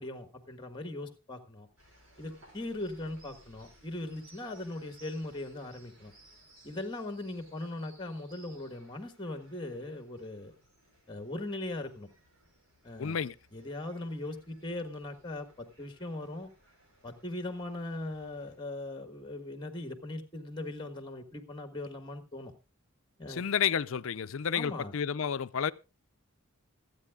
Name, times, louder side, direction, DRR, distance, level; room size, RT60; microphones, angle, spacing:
voice 1, 0.0-1.7 2.2-6.1 6.6-10.5 11.1-12.1 12.8-13.2 13.5-16.5 17.0-22.5 23.2-23.4 24.5-24.9, left 2 dB, 20° left, 1.4 m, -39 dB
sound 1, 1.8-18.6, right 1 dB, 90° right, 6.0 m, -61 dB
voice 2, 13.0-13.3 23.3-25.7, left 7 dB, 70° left, 0.5 m, -31 dB
26.0 x 8.9 x 2.4 m
head